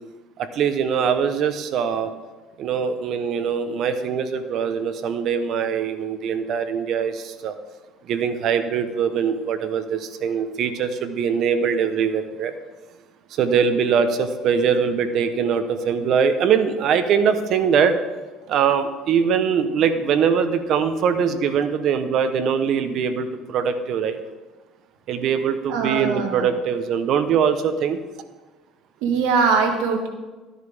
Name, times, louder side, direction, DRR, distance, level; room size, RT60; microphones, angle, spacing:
voice 1, 0.4-2.1 2.6-7.5 8.0-12.5 13.3-17.9 18.5-24.2 25.1-28.0, right 7 dB, 55° right, 9 dB, 1.0 m, -22 dB
voice 2, 25.7-26.5 29.0-30.1, right 5 dB, 85° right, 3 dB, 1.9 m, -21 dB
13.0 x 10.5 x 3.6 m, 1.2 s
cardioid pair, 110°, 0 cm